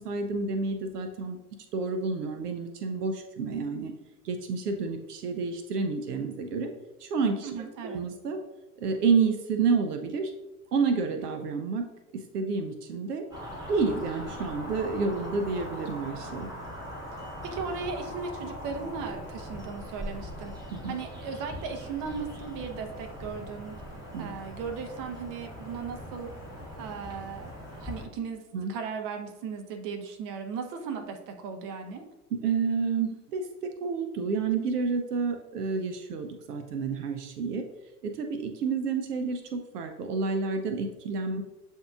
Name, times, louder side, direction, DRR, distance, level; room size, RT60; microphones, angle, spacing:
voice 1, 0.0-1.4 1.7-3.9 4.2-6.7 7.0-7.5 7.8-8.4 8.8-10.3 10.7-11.8 12.3-13.2 13.7-16.5 20.7-20.9 24.1-24.3 28.5-28.7 32.4-37.6 38.0-41.4, right 4 dB, 80° right, 6 dB, 0.6 m, -29 dB
voice 2, 7.4-8.0 17.2-23.8 24.2-26.3 26.8-28.4 28.7-32.0, right 5 dB, 45° right, 4 dB, 0.8 m, -37 dB
sound 1, 13.3-28.1, equal, 10° right, 1.4 m, -41 dB
7.7 x 2.7 x 2.4 m, 1.0 s
hypercardioid pair, 90°, 46 cm